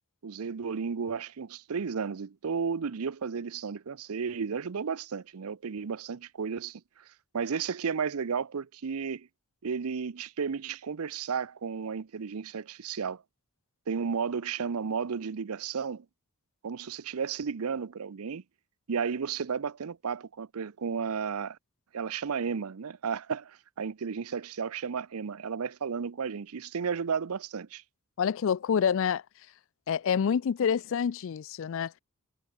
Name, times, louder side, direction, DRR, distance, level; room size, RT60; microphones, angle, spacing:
voice 1, 0.2-6.8 7.3-9.3 9.6-13.2 13.9-16.0 16.6-18.4 18.9-21.6 21.9-27.8, right 6 dB, 80° right, 0.6 m, -33 dB
voice 2, 28.2-29.2 29.9-31.9, left 7 dB, 60° left, 0.4 m, -27 dB
head